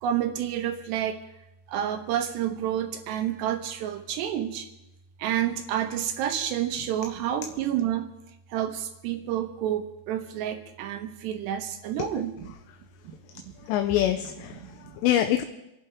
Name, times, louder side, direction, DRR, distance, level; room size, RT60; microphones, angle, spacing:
voice 1, 0.0-1.2 1.7-4.6 5.2-8.1 8.5-12.3, right 10 dB, 75° right, 6 dB, 3.1 m, -29 dB
voice 2, 13.6-15.4, left 12 dB, 80° left, 7 dB, 2.8 m, -25 dB
27.0 x 11.5 x 3.6 m, 0.92 s
omnidirectional pair, 5.1 m